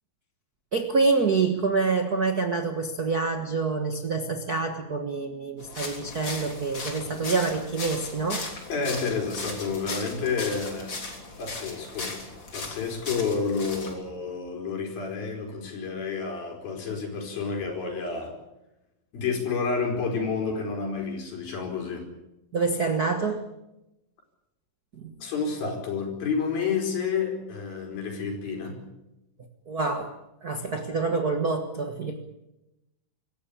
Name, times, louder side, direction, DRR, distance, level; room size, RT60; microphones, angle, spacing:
voice 1, 0.7-8.5 22.5-23.5 25.0-25.2 29.7-30.1 30.4-32.2, right 4 dB, 70° right, 5 dB, 0.8 m, -26 dB
sound 1, 5.6-13.9, left 3 dB, 30° left, 4.0 m, -37 dB
voice 2, 8.7-11.0 11.4-12.2 12.5-18.3 19.1-22.0 25.2-28.8, left 5 dB, 75° left, 2 dB, 6.6 m, -30 dB
26.0 x 15.0 x 8.6 m, 0.94 s
omnidirectional pair, 4.2 m